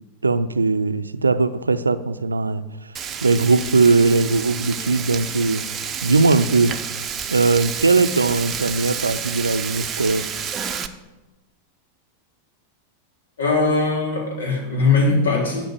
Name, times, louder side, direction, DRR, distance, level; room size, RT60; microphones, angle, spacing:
voice 1, 0.2-2.9 3.2-5.6 6.0-6.8 7.3-10.3, right 3 dB, 80° right, 12 dB, 0.5 m, -19 dB
Frying (food), 2.9-10.9, right 7 dB, 25° right, 0.8 m, -30 dB
voice 2, 13.4-15.7, left 3 dB, 65° left, -1 dB, 3.8 m, -20 dB
12.0 x 5.2 x 8.6 m, 1.1 s
figure-of-eight pair, 90°, 0 cm